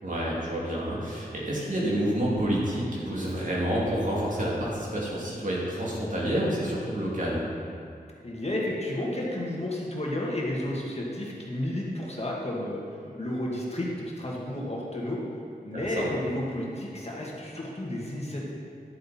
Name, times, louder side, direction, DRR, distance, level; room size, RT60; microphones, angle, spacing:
voice 1, 0.0-7.4 15.7-16.1, right 1 dB, 55° right, -6 dB, 2.6 m, -29 dB
voice 2, 8.2-12.8 13.2-15.2 15.6-18.5, left 1 dB, 40° left, -4 dB, 1.8 m, -32 dB
11.0 x 7.8 x 4.3 m, 2.5 s
wide cardioid pair, 70°, 16 cm